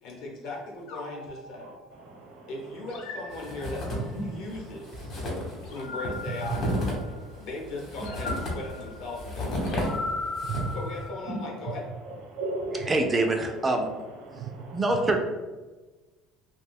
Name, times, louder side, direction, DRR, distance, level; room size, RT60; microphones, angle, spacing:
voice 1, 0.0-1.7 2.5-5.2 5.7-6.7 7.4-9.9 10.7-11.8, left 2 dB, 65° left, -1 dB, 0.9 m, -38 dB
sound 1, 0.9-2.2 2.9-4.2 5.6-7.4 8.0-11.5, left 3 dB, 85° left, 0.6 m, -39 dB
voice 2, 1.6-2.5 3.5-3.6 3.9-5.8 6.3-7.5 9.6-10.8 11.3-11.7 12.0-13.3 13.6-15.0, right 4 dB, 75° right, 1 dB, 0.7 m, -37 dB
sound 2, 3.3-4.2 4.5-4.6 4.8-10.9, left 1 dB, 40° left, 0.9 m, -33 dB
voice 3, 12.9-13.9 14.7-15.2, right 2 dB, 15° right, 3 dB, 0.3 m, -24 dB
2.6 x 2.2 x 3.4 m, 1.2 s
cardioid pair, 155°, 0 cm